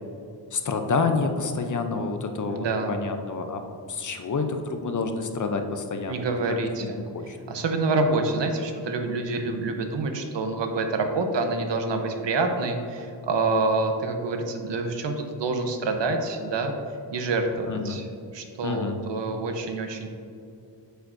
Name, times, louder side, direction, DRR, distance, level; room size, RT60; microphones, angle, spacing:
voice 1, 0.5-3.6 3.9-6.6 7.0-7.4 17.7-18.0 18.6-19.0, left 4 dB, 45° left, 6 dB, 0.6 m, -28 dB
voice 2, 2.5-2.9 6.1-7.0 7.5-16.7 17.1-18.1 18.3-20.1, right 3 dB, 85° right, 5 dB, 0.9 m, -27 dB
9.1 x 6.8 x 2.6 m, 2.6 s
wide cardioid pair, 175°, 42 cm